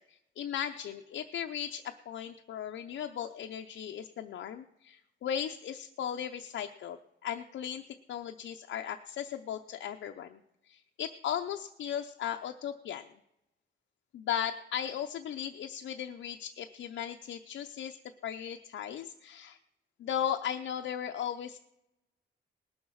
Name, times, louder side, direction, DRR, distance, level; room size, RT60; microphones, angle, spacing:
voice 1, 0.0-7.8 8.1-10.4 10.6-13.1 14.1-18.0 18.2-19.6 20.0-21.6, left 9 dB, 85° left, 4 dB, 0.6 m, -37 dB
19.0 x 7.1 x 6.3 m, 0.89 s
wide cardioid pair, 170°, 19 cm